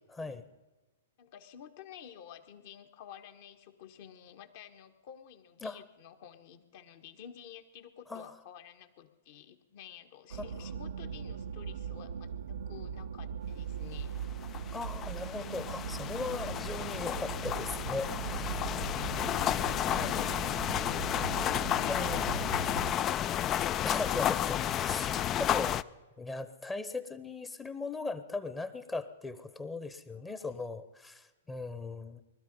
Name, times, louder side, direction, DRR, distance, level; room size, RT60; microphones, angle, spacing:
voice 1, 0.1-0.4 5.6-5.8 8.1-8.3 14.7-18.6 19.9-20.1 21.9-22.4 23.8-25.8 26.2-32.2, left 3 dB, 15° left, 12 dB, 1.0 m, -38 dB
voice 2, 1.2-14.2 18.6-23.0 24.9-25.0 30.1-30.7, left 9 dB, 50° left, 7 dB, 1.5 m, -51 dB
sound 1, 10.3-23.0, right 7 dB, 75° right, 0.6 m, -40 dB
sound 2, 14.4-25.8, left 11 dB, 30° left, 0.4 m, -32 dB
20.0 x 13.0 x 5.4 m, 1.2 s
hypercardioid pair, 115°, 0 cm